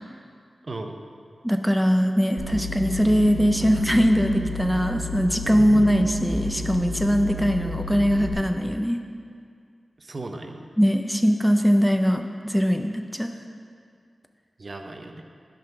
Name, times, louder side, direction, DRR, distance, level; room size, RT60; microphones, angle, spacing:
voice 1, 0.6-1.0 5.7-5.8 10.0-10.7 14.6-15.2, right 2 dB, 40° right, 4 dB, 0.6 m, -36 dB
voice 2, 1.4-9.0 10.8-13.3, equal, ahead, 5 dB, 0.4 m, -21 dB
sound 1, 2.4-8.3, left 1 dB, 85° right, 1.2 m, -31 dB
11.0 x 3.9 x 5.7 m, 2.2 s
wide cardioid pair, 110°, 0 cm